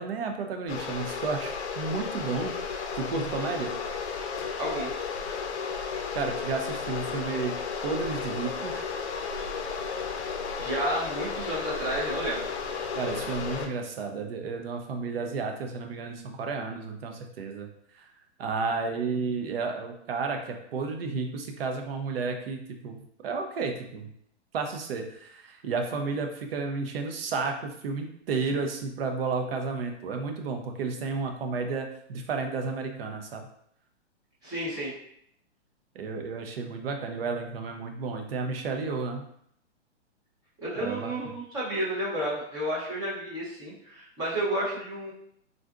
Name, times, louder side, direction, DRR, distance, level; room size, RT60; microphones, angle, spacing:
voice 1, 0.0-3.7 6.1-7.5 7.8-8.8 12.9-17.7 17.9-18.1 18.4-24.1 24.5-33.5 35.9-39.2 40.8-41.1, right 4 dB, 55° right, 4 dB, 0.6 m, -32 dB
sound 1, 0.7-13.7, left 5 dB, 70° left, 0.6 m, -33 dB
voice 2, 4.6-4.9 10.6-12.5 34.4-34.9 40.6-45.1, right 1 dB, 10° right, -7 dB, 0.5 m, -31 dB
3.7 x 2.5 x 2.3 m, 0.69 s
hypercardioid pair, 155°, 35 cm